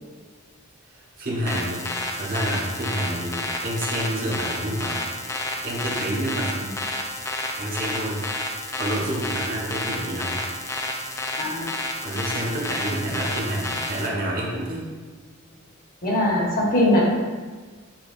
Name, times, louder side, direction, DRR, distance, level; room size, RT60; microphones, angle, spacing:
voice 1, 0.9-1.9 2.1-5.0 5.6-6.7 7.6-8.2 8.8-10.4 11.5-11.6 12.0-14.9, right 1 dB, 45° right, -4 dB, 1.0 m, -28 dB
sound 1, 1.5-14.1, left 1 dB, 15° left, 0.4 m, -30 dB
voice 2, 11.4-11.7 16.0-17.0, left 1 dB, 45° left, -3 dB, 1.0 m, -21 dB
7.1 x 2.9 x 2.3 m, 1.4 s
head